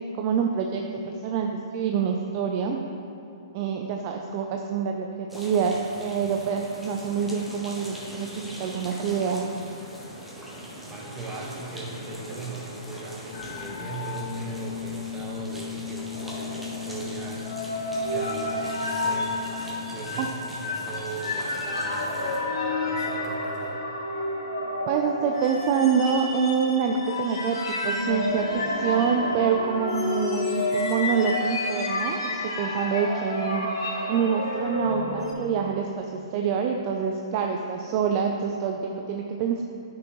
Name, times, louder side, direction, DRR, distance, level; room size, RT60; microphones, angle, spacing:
voice 1, 0.2-2.9 3.5-5.7 6.0-9.5 20.2-20.3 24.9-33.7 34.1-39.6, right 6 dB, 40° right, 3 dB, 0.5 m, -26 dB
sound 1, 5.3-22.4, equal, ahead, 1.2 m, -41 dB
voice 2, 10.8-17.5 18.0-19.4 19.9-23.8, right 3 dB, 20° right, -2 dB, 1.3 m, -39 dB
sound 2, 13.3-20.0, left 10 dB, 50° left, 0.4 m, -37 dB
sound 3, 16.1-35.3, left 2 dB, 70° left, 1.6 m, -30 dB
9.4 x 6.1 x 3.1 m, 3.0 s
hypercardioid pair, 125°, 3 cm